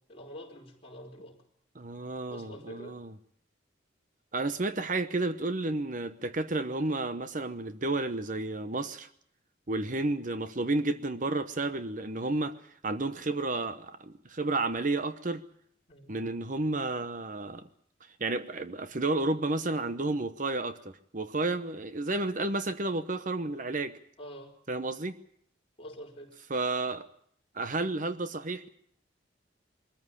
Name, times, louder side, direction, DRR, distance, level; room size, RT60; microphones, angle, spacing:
voice 1, 0.1-1.4 2.3-3.0 15.9-16.3 24.2-24.5 25.8-26.3, equal, 30° left, 4.9 m, -46 dB
voice 2, 1.7-3.1 4.3-9.1 9.7-12.6 12.8-15.4 16.1-17.6 18.2-23.9 24.7-25.1 26.5-27.1 27.5-28.7, right 2 dB, 45° right, 1.0 m, -31 dB
23.0 x 14.5 x 9.8 m
head